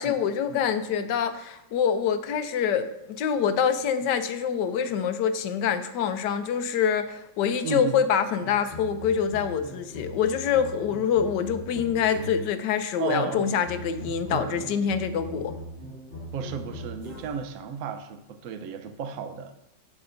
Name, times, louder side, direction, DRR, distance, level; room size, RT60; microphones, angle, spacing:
voice 1, 0.0-15.5, left 7 dB, 75° left, 10 dB, 1.2 m, -25 dB
voice 2, 7.6-8.0 13.0-13.5 14.1-14.6 16.3-19.5, right 6 dB, 60° right, 7 dB, 1.0 m, -33 dB
sound 1, 8.4-12.6 13.3-17.6, equal, 30° right, 2.2 m, -40 dB
17.5 x 6.0 x 2.6 m, 0.86 s
omnidirectional pair, 2.0 m